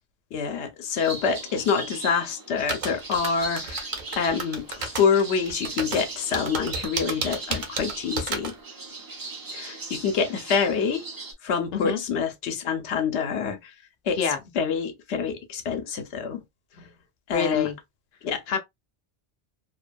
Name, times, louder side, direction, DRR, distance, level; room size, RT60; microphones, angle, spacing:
voice 1, 0.3-8.5 9.5-11.1 11.4-13.7 14.0-16.4 16.7-16.9 17.3-17.7 18.2-18.4, left 6 dB, 85° left, 0.9 m, -26 dB
sound 1, 1.0-11.3, right 3 dB, 30° right, 0.4 m, -38 dB
sound 2, 2.7-8.5, right 4 dB, 50° right, 0.7 m, -31 dB
voice 2, 17.3-17.7 18.5-18.6, left 7 dB, 60° left, 0.7 m, -26 dB
2.8 x 2.2 x 2.5 m
omnidirectional pair, 1.1 m